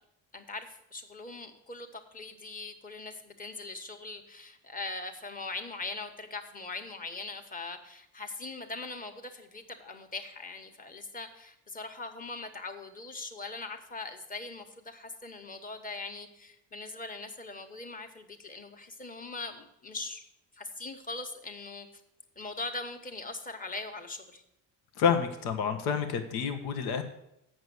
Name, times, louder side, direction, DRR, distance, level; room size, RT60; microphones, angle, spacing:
voice 1, 0.3-20.2 20.5-21.9 22.4-24.4, left 3 dB, 20° left, 6 dB, 1.2 m, -41 dB
voice 2, 25.0-27.0, left 7 dB, 90° left, 7 dB, 1.1 m, -28 dB
8.0 x 6.2 x 7.9 m, 0.82 s
cardioid pair, 110°, 37 cm